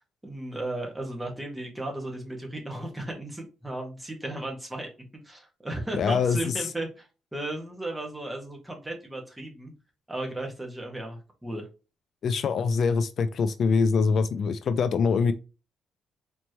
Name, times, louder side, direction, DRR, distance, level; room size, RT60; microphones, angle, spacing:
voice 1, 0.0-4.9 5.2-9.7 10.1-11.7, right 1 dB, 10° right, 1.6 m, -35 dB
voice 2, 6.0-6.5 12.2-15.3, left 5 dB, 60° left, 0.4 m, -24 dB
4.2 x 3.1 x 3.0 m
cardioid pair, 90°, 0 cm